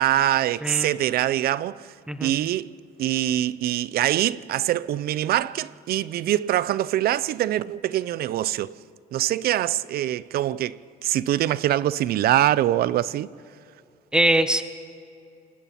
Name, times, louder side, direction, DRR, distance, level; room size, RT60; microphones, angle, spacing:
voice 1, 0.0-1.9 2.2-2.7 3.0-8.8 9.1-13.3, right 13 dB, 65° right, 0.6 m, -24 dB
voice 2, 0.6-0.9 2.1-2.3 14.1-14.6, right 1 dB, 5° right, 1.3 m, -22 dB
28.0 x 20.5 x 5.9 m
cardioid pair, 110°, 17 cm